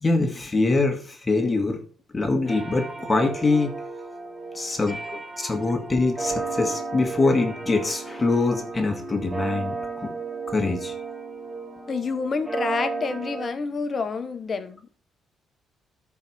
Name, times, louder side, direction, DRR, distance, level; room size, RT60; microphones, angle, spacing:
voice 1, 0.0-1.8 2.1-3.7 4.5-5.0 5.4-9.8 10.0-10.1 10.5-10.9, left 3 dB, 25° left, 1.8 m, -23 dB
sound 1, 2.5-13.5, right 3 dB, 10° right, 3.0 m, -33 dB
voice 2, 11.9-15.0, left 4 dB, 45° left, 1.1 m, -29 dB
12.5 x 4.9 x 4.3 m
cardioid pair, 90°, 0 cm